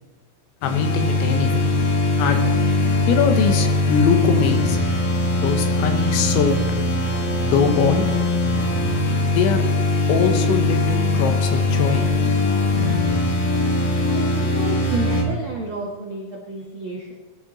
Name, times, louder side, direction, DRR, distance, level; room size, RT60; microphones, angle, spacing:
voice 1, 0.6-1.7 2.2-2.5 3.1-4.8 5.4-6.6 7.4-8.1 9.3-9.6 10.1-12.0, left 6 dB, 90° left, 6 dB, 3.7 m, -22 dB
Atmospheric Ambient Spacy Synth Beat, 0.6-15.2, left 2 dB, 50° left, 2.6 m, -21 dB
voice 2, 14.1-17.1, right 2 dB, 65° right, -3 dB, 1.2 m, -31 dB
21.0 x 11.0 x 4.2 m, 1.3 s
omnidirectional pair, 5.2 m